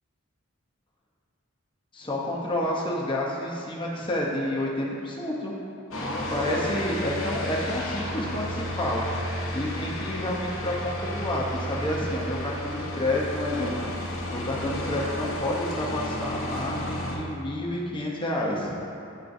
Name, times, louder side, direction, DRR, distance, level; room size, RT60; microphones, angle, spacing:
voice 1, 1.9-5.5 6.3-9.1 9.5-13.9 14.3-18.7, left 1 dB, 20° left, -3 dB, 0.7 m, -29 dB
sound 1, 5.9-17.2, left 1 dB, 65° left, 0.9 m, -32 dB
10.5 x 3.7 x 2.6 m, 2.6 s
head